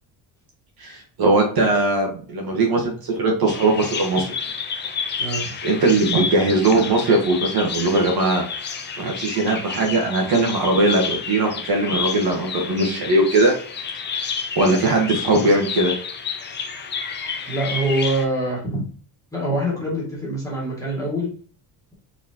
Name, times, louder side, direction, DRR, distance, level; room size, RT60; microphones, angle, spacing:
voice 1, 0.8-4.3 5.6-8.4 9.0-13.5 14.6-15.9, right 2 dB, 50° right, 0 dB, 1.3 m, -20 dB
Bird vocalization bird call bird song, 3.5-18.3, left 6 dB, 25° left, 0.3 m, -30 dB
voice 2, 5.2-5.5 17.5-18.8 19.3-21.3, right 1 dB, 5° left, -5 dB, 1.7 m, -24 dB
4.2 x 4.1 x 2.8 m, 0.42 s
cardioid pair, 175°, 46 cm